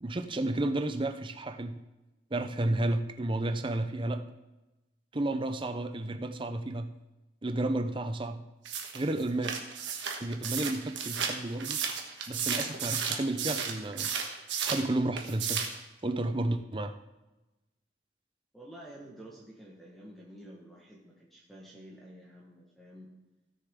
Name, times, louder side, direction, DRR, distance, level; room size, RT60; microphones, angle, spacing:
voice 1, 0.0-1.8 2.3-4.3 5.1-6.9 7.4-8.4 8.9-9.5 10.2-11.8 12.3-14.1 14.6-15.6 16.0-16.9, right 1 dB, 30° right, 8 dB, 0.6 m, -32 dB
sound 1, 8.6-14.9 15.2-15.8, right 7 dB, 85° right, 1.5 m, -33 dB
voice 2, 18.5-23.1, right 1 dB, ahead, -4 dB, 1.4 m, -50 dB
16.5 x 6.8 x 3.7 m, 1.0 s
head